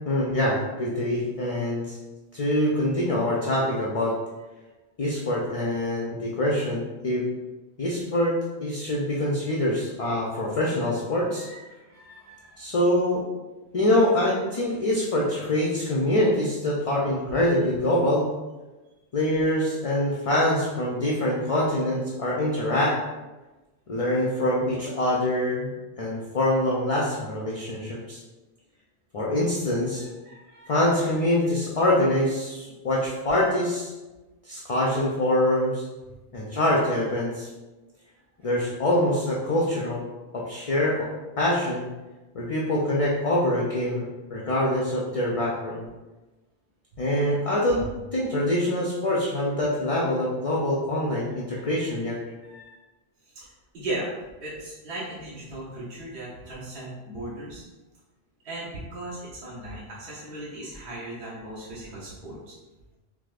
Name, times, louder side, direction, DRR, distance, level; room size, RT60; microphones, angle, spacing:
voice 1, 0.1-2.0 2.3-4.1 5.0-7.2 7.8-11.5 12.6-13.2 13.7-18.3 19.1-23.0 23.9-28.2 29.1-30.0 30.7-33.9 34.4-35.8 36.3-37.5 38.4-40.0 40.3-41.1 41.4-41.9 42.3-45.9 47.0-47.8 48.1-52.2, left 1 dB, 50° left, -4 dB, 0.4 m, -25 dB
voice 2, 11.3-12.6 30.0-30.9 51.5-52.7 53.3-54.1 54.4-57.6 58.4-62.5, right 1 dB, 65° right, -7 dB, 0.9 m, -38 dB
4.7 x 2.0 x 2.4 m, 1.1 s
omnidirectional pair, 1.1 m